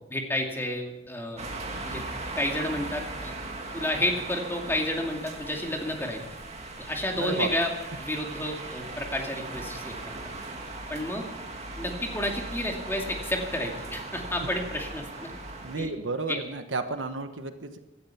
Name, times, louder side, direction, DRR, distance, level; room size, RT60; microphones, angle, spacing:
voice 1, 0.0-1.4 1.9-2.0 2.4-3.3 3.7-6.2 6.8-7.7 8.0-10.2 10.9-11.3 11.8-15.3 15.8-15.9 16.3-16.4, left 1 dB, 15° left, 1 dB, 2.4 m, -31 dB
sound 1, 1.4-15.8, right 2 dB, 35° right, 2.3 m, -38 dB
voice 2, 7.2-7.5 15.6-17.8, right 3 dB, 75° right, 8 dB, 1.2 m, -32 dB
17.0 x 12.5 x 5.8 m, 0.99 s
head